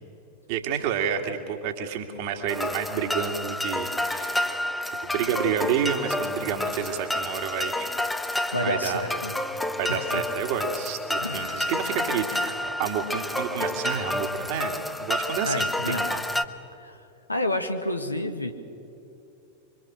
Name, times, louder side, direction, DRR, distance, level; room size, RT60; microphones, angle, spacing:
voice 1, 0.5-4.5 5.0-9.2 9.8-16.2, right 7 dB, 45° right, 5 dB, 2.5 m, -30 dB
sound 1, 2.5-16.4, left 1 dB, 5° left, 1.1 m, -30 dB
voice 2, 8.5-9.4 9.9-10.2 11.2-11.7 15.4-16.1 16.8-18.5, left 1 dB, 85° left, 6 dB, 1.7 m, -30 dB
26.0 x 24.0 x 6.4 m, 2.7 s
figure-of-eight pair, 90°, 0 cm